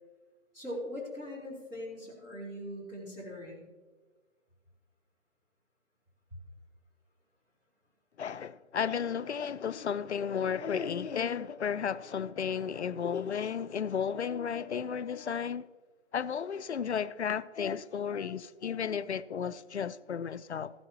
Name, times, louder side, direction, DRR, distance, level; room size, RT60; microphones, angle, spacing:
voice 1, 0.5-3.7, equal, 10° right, 2.8 m, -41 dB
voice 2, 8.2-15.7 16.1-20.7, left 7 dB, 65° left, 0.5 m, -33 dB
14.5 x 12.0 x 2.9 m
figure-of-eight pair, 160°, 37 cm